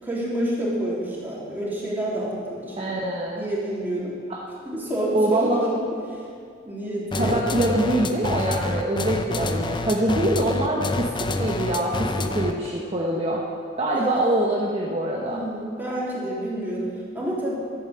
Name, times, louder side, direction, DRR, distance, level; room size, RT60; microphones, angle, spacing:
voice 1, 0.0-3.0 3.4-4.2 4.7-5.8 6.1-6.2 6.6-7.4 13.9-14.1 15.2-16.9 17.1-17.5, right 1 dB, 10° right, -7 dB, 3.4 m, -28 dB
voice 2, 2.8-3.5 4.3-4.4 5.1-5.6 7.1-13.4 13.8-15.4, right 1 dB, 30° right, -3 dB, 1.1 m, -24 dB
sound 1, 7.1-12.7, left 2 dB, 25° left, 0.6 m, -27 dB
12.0 x 8.9 x 7.8 m, 2.3 s
head